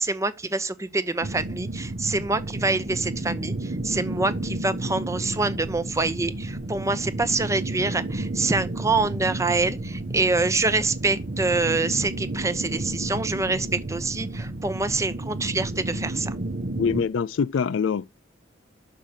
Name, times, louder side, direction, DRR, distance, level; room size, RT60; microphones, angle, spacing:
voice 1, 0.0-16.3, right 3 dB, 15° right, 0.7 m, -26 dB
sound 1, 1.2-17.0, right 2 dB, 50° right, 0.9 m, -31 dB
voice 2, 16.8-18.1, left 6 dB, 75° left, 0.4 m, -24 dB
6.4 x 5.6 x 7.2 m
head